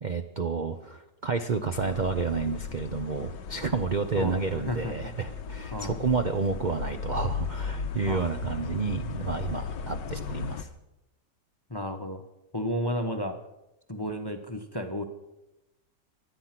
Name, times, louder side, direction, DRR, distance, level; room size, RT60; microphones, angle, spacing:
voice 1, 0.0-10.7, right 4 dB, 45° right, 7 dB, 0.6 m, -30 dB
sound 1, 1.7-10.6, left 6 dB, 85° left, 1.6 m, -36 dB
voice 2, 4.2-4.9 5.7-6.0 8.1-8.3 11.7-12.2 12.5-13.4 13.9-15.0, equal, 20° left, 6 dB, 0.8 m, -32 dB
24.0 x 9.7 x 6.0 m, 0.96 s
omnidirectional pair, 1.9 m